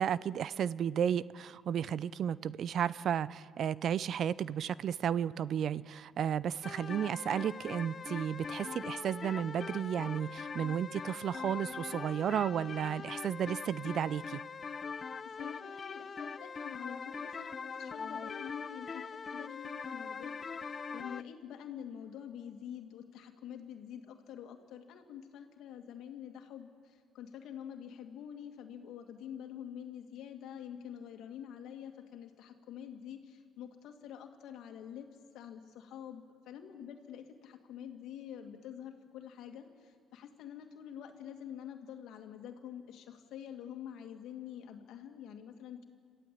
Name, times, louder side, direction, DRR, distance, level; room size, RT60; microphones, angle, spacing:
voice 1, 0.0-14.4, right 9 dB, 60° right, 19 dB, 0.5 m, -33 dB
sound 1, 6.6-21.2, left 5 dB, 40° left, 0.6 m, -42 dB
voice 2, 15.2-35.1 35.3-45.9, left 9 dB, 70° left, 5 dB, 2.3 m, -47 dB
27.5 x 14.5 x 8.5 m, 2.3 s
supercardioid pair, 75°, 0 cm